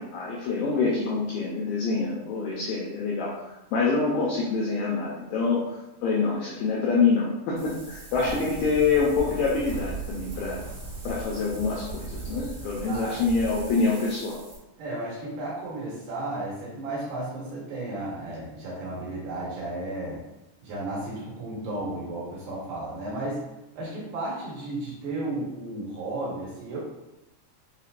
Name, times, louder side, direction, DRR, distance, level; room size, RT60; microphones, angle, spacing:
voice 1, 0.0-3.4 3.7-10.6 11.0-14.4, left 4 dB, 85° left, -4 dB, 2.0 m, -26 dB
Wind, 7.6-14.6, right 3 dB, 50° right, 1.6 m, -38 dB
voice 2, 8.1-8.5 12.9-13.2 14.8-20.2 20.6-23.4 23.8-26.8, right 2 dB, 70° right, -5 dB, 2.6 m, -33 dB
6.7 x 2.9 x 2.5 m, 0.95 s
omnidirectional pair, 4.8 m